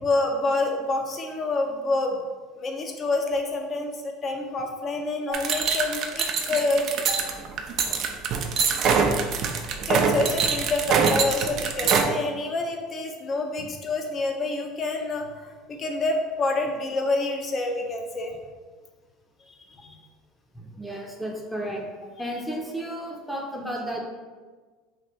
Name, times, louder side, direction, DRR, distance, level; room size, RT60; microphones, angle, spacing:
voice 1, 0.0-2.2 2.6-7.2 9.9-18.3 19.5-20.0, left 2 dB, 35° left, 3 dB, 0.7 m, -27 dB
sound 1, 5.3-12.0, right 6 dB, 55° right, 0.4 m, -24 dB
voice 2, 20.5-21.9 22.2-24.0, right 1 dB, ahead, -1 dB, 0.7 m, -33 dB
3.2 x 2.6 x 4.3 m, 1.4 s
hypercardioid pair, 85°, 0 cm